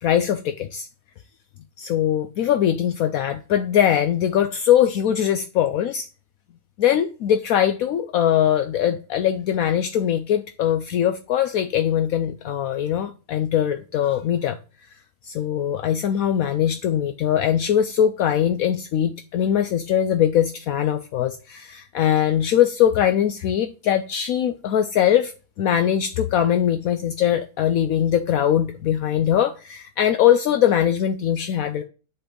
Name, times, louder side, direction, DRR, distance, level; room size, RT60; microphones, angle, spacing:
voice 1, 0.0-0.9 1.8-6.1 6.8-14.6 15.2-31.8, left 10 dB, 70° left, 1.0 m, -21 dB
7.8 x 4.4 x 3.7 m
omnidirectional pair, 1.6 m